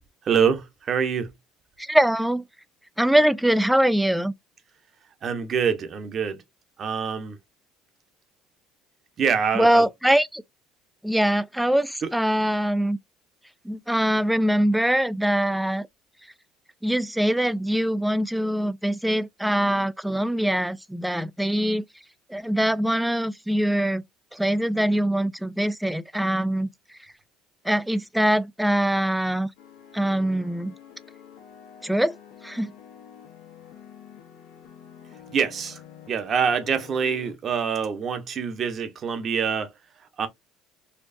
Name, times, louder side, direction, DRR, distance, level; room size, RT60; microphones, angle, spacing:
voice 1, 0.2-1.3 5.2-6.4 6.8-7.4 9.2-9.8 12.0-12.1 35.3-35.8 36.1-39.7 40.2-40.3, right 6 dB, 40° right, 1.0 m, -25 dB
voice 2, 1.8-2.4 3.0-4.3 9.5-10.4 11.0-13.0 13.7-15.9 16.8-21.8 22.3-24.0 24.3-26.7 27.6-29.5 29.9-30.7 31.8-32.2 32.4-32.7, right 1 dB, 5° right, 0.4 m, -23 dB
sound 1, 29.6-37.3, left 9 dB, 85° left, 1.1 m, -47 dB
4.4 x 2.4 x 2.6 m
cardioid pair, 110°, 0 cm